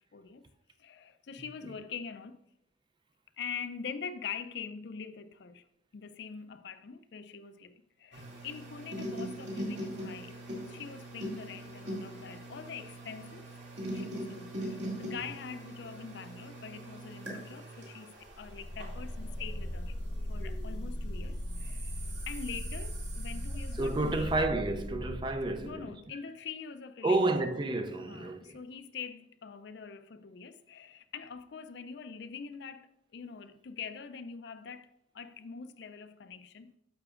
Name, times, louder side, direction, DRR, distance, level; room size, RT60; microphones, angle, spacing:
voice 1, 0.1-0.4 0.8-2.4 3.4-5.6 5.9-10.4 10.7-13.5 13.9-20.0 20.3-24.3 25.6-27.3 28.1-36.7, left 6 dB, 60° left, 0.4 m, -44 dB
sound 1, 8.1-20.8 21.3-24.2, right 1 dB, 60° right, 2.3 m, -42 dB
sound 2, 18.3-25.9, equal, 90° left, 1.0 m, -38 dB
voice 2, 23.7-26.0 27.0-28.6, right 2 dB, 25° right, 0.4 m, -30 dB
9.8 x 6.7 x 2.4 m
head